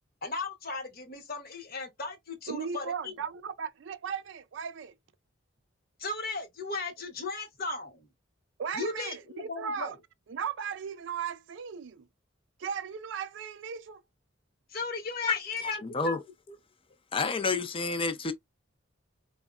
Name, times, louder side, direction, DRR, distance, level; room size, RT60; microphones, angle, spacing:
voice 1, 0.2-3.1 6.0-8.1 8.7-9.9 14.7-16.2, left 3 dB, 50° left, 0.9 m, -36 dB
voice 2, 2.5-4.9 8.6-10.0 10.3-12.1 12.6-14.0, right 6 dB, 65° right, 0.4 m, -36 dB
voice 3, 15.6-16.2 17.1-18.3, left 4 dB, 30° left, 0.5 m, -29 dB
4.5 x 2.1 x 2.3 m
head